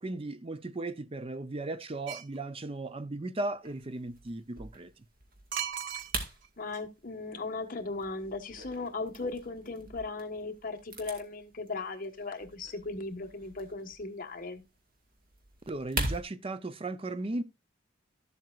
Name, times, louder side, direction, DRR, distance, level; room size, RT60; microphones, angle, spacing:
voice 1, 0.0-5.0 15.7-17.4, right 2 dB, 30° right, 0.5 m, -36 dB
sound 1, 2.1-2.4 5.5-6.5 6.7-6.8, right 9 dB, 85° right, 0.8 m, -36 dB
sound 2, 3.6-16.2, right 2 dB, 50° right, 2.1 m, -43 dB
voice 2, 6.6-14.6, left 3 dB, 50° left, 1.3 m, -37 dB
13.0 x 7.6 x 2.4 m
head